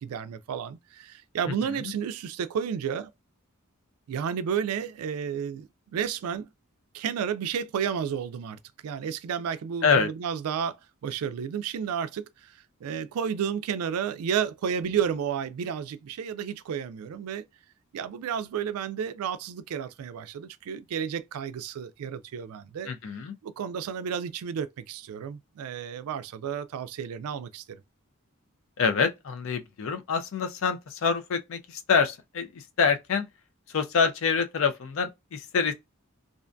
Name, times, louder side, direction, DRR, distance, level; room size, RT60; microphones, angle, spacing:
voice 1, 0.0-3.1 4.1-6.5 6.9-10.8 11.0-17.4 17.9-22.9 23.4-27.8, right 7 dB, 90° right, 0.3 m, -32 dB
voice 2, 22.9-23.3 28.8-33.3 33.7-35.7, left 5 dB, 65° left, 0.4 m, -26 dB
2.4 x 2.2 x 2.5 m
head